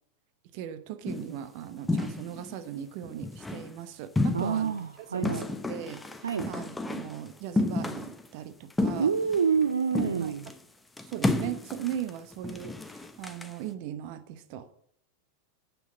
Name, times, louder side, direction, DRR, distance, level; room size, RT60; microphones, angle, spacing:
voice 1, 0.5-4.7 5.1-9.1 10.2-10.3 11.1-14.7, right 10 dB, 45° right, 0.9 m, -39 dB
sound 1, 1.1-1.4 1.9-2.6 3.0-3.7 4.2-4.8 5.2-7.2 7.6-8.3 8.7-9.7 9.9-10.6 11.0-13.5, left 2 dB, 10° left, 0.8 m, -31 dB
voice 2, 4.3-5.6 6.2-6.5 9.0-10.5, right 6 dB, 70° right, 0.5 m, -27 dB
9.0 x 5.9 x 7.3 m
figure-of-eight pair, 90°, 0 cm